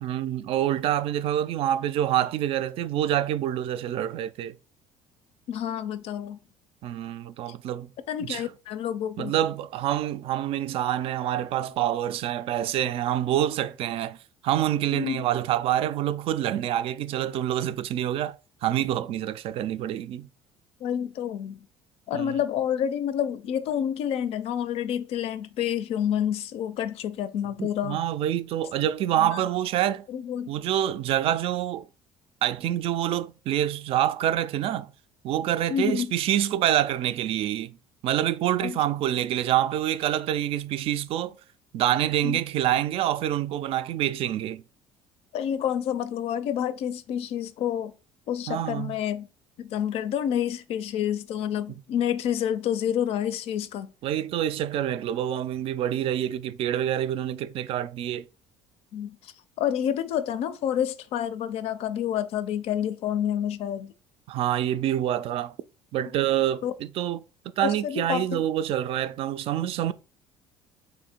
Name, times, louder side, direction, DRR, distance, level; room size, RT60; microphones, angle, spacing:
voice 1, 0.0-4.6 6.8-7.9 8.3-8.4 9.2-14.2 14.4-20.3 22.1-22.3 27.6-30.0 30.5-31.9 32.4-34.9 35.2-37.8 38.0-41.3 41.7-44.6 48.5-49.0 54.0-58.2 64.3-65.5 65.9-67.2 67.6-69.9, right 11 dB, 55° right, 0.3 m, -26 dB
voice 2, 5.5-6.4 8.1-9.3 14.9-15.3 20.8-21.7 22.1-28.0 29.2-29.4 30.1-30.5 35.7-36.1 38.6-38.8 42.2-42.4 45.3-47.9 48.3-49.3 49.6-53.9 58.9-63.9 66.6-66.7 67.6-68.4, left 9 dB, 60° left, 0.4 m, -28 dB
3.5 x 2.6 x 4.3 m
supercardioid pair, 80°, 11 cm